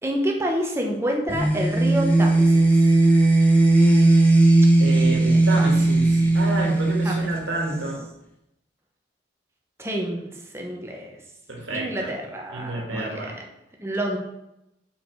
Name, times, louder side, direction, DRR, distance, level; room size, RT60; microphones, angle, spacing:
voice 1, 0.0-2.9 5.2-5.7 7.0-7.3 9.8-11.1 11.7-13.4 13.8-14.2, equal, 15° right, 0 dB, 1.0 m, -28 dB
sound 1, 1.3-7.9, right 2 dB, 10° left, 1.0 m, -18 dB
voice 2, 4.8-8.1 11.5-12.1 12.5-13.4, right 2 dB, 80° right, -1 dB, 2.0 m, -29 dB
6.6 x 5.0 x 4.6 m, 0.87 s
head